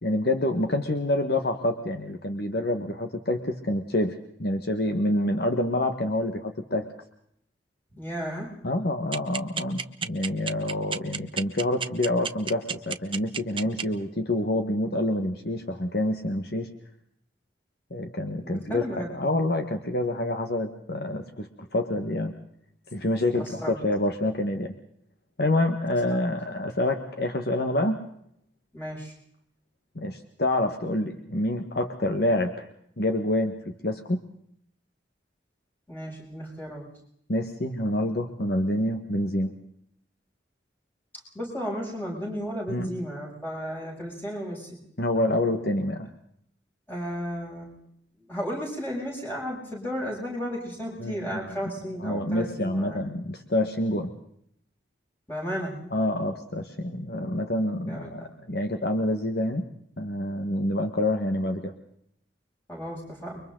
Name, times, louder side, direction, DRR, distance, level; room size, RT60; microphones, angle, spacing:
voice 1, 0.0-6.9 8.6-16.7 17.9-22.3 22.9-24.7 25.4-28.0 29.9-32.7 33.0-34.2 37.3-39.5 42.7-42.9 45.0-46.1 51.0-51.2 51.5-51.6 52.0-54.1 55.9-59.6 60.0-61.7, left 1 dB, 55° left, 5 dB, 1.5 m, -27 dB
voice 2, 8.0-8.5 18.4-19.1 23.4-23.7 25.9-26.0 28.7-29.1 35.9-36.9 41.3-44.8 46.9-47.7 48.2-53.0 55.3-55.8 57.9-58.3 62.7-63.4, equal, 10° left, -4 dB, 7.5 m, -34 dB
sound 1, 9.1-13.8, right 7 dB, 30° right, 0.9 m, -29 dB
30.0 x 24.0 x 3.9 m, 0.70 s
head